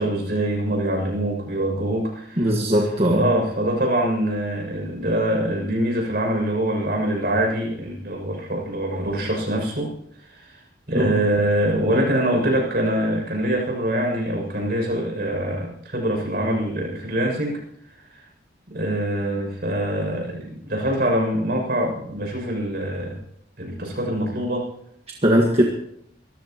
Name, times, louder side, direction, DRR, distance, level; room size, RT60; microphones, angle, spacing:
voice 1, 0.0-2.5 3.1-9.9 10.3-10.6 10.9-17.6 18.7-23.2 23.6-24.7, right 1 dB, 55° right, 0 dB, 6.7 m, -24 dB
voice 2, 2.4-3.2 10.9-11.1 25.2-25.6, equal, 35° right, 0 dB, 1.6 m, -19 dB
24.5 x 14.5 x 3.0 m, 0.70 s
head